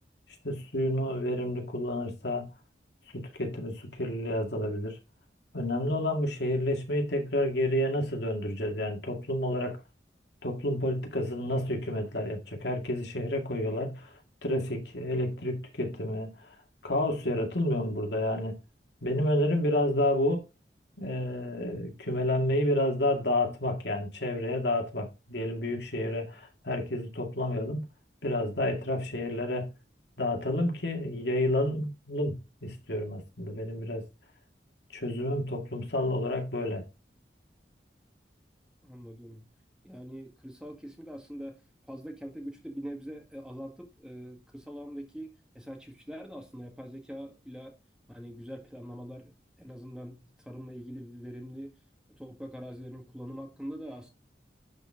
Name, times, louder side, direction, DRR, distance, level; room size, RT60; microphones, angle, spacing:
voice 1, 0.4-2.5 3.1-5.0 5.5-9.8 10.4-14.1 14.4-16.3 16.8-18.5 19.0-20.4 21.0-27.8 28.2-29.7 30.2-34.0 34.9-36.8, left 1 dB, 75° left, 2.2 m, -30 dB
voice 2, 38.8-39.4 39.8-41.6 41.9-47.7 48.1-51.8 52.1-54.1, equal, 5° right, 1.6 m, -43 dB
11.5 x 4.4 x 3.7 m
head